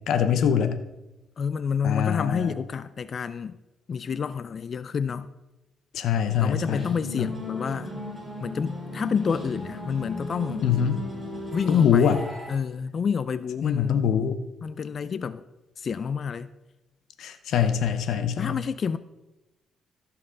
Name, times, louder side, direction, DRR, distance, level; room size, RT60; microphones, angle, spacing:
voice 1, 0.1-0.8 1.8-2.5 5.9-7.3 10.6-11.0 11.7-12.2 13.6-14.4 17.2-18.6, left 8 dB, 75° left, 0.7 m, -23 dB
voice 2, 1.4-3.6 3.9-5.3 6.4-7.9 8.4-10.7 11.5-12.2 12.5-14.0 14.6-15.4 15.8-16.5 18.4-19.0, left 6 dB, 45° left, 0.4 m, -29 dB
sound 1, 6.3-12.5, left 1 dB, 5° right, 3.4 m, -37 dB
14.5 x 5.9 x 3.8 m
cardioid pair, 90°, 0 cm